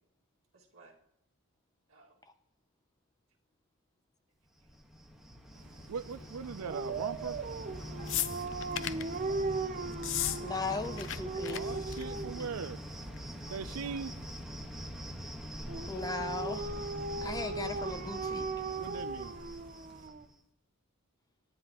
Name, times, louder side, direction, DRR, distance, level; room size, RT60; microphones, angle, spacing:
voice 1, 0.5-1.0 1.9-2.2 6.1-6.3 8.0-8.4 9.3-9.4 10.0-10.6 10.9-11.2 12.1-12.2 13.1-14.5, right 2 dB, 65° right, 2.0 m, -56 dB
Cricket, 4.6-20.3, equal, ahead, 1.3 m, -44 dB
voice 2, 5.5-8.0 8.5-9.3 11.4-13.1 13.5-14.4 18.7-20.1, right 6 dB, 85° right, 0.4 m, -42 dB
Dog, 6.7-12.5 15.7-20.3, right 3 dB, 40° right, 0.6 m, -38 dB
sound 1, 8.1-9.1 9.9-10.4 10.6-11.2 11.4-11.6 11.9-12.2 13.2-13.3, left 12 dB, 60° left, 0.5 m, -34 dB
voice 3, 10.4-11.8 15.9-16.7 17.2-18.5, left 3 dB, 15° left, 0.6 m, -37 dB
28.0 x 10.0 x 3.0 m
head